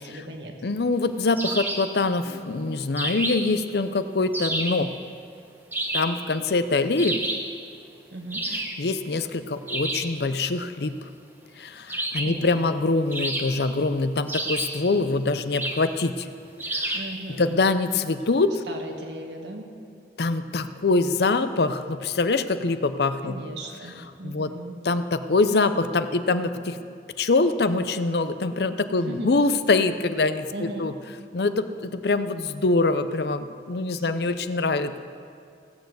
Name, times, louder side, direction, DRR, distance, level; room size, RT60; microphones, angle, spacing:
voice 1, 0.0-0.6 8.1-8.4 12.2-12.8 16.9-17.5 18.7-19.7 23.2-24.8 29.0-29.3 30.5-30.9 33.9-34.4, right 1 dB, 80° right, 2 dB, 1.7 m, -37 dB
voice 2, 0.6-4.9 5.9-7.2 8.5-11.0 11.6-16.3 16.7-17.0 17.4-18.6 20.2-23.4 24.2-24.5 24.8-26.8 27.2-30.9 31.3-35.0, left 3 dB, 70° left, 11 dB, 0.6 m, -24 dB
sound 1, 1.4-1.9 3.0-3.6 4.3-4.9 5.7-6.2 7.0-7.5 8.3-8.8 9.7-10.1 11.9-12.4 13.1-13.8 14.3-14.9 15.5-15.9 16.6-17.1, right 1 dB, 10° right, 1.1 m, -29 dB
16.5 x 7.0 x 7.7 m, 2.4 s
head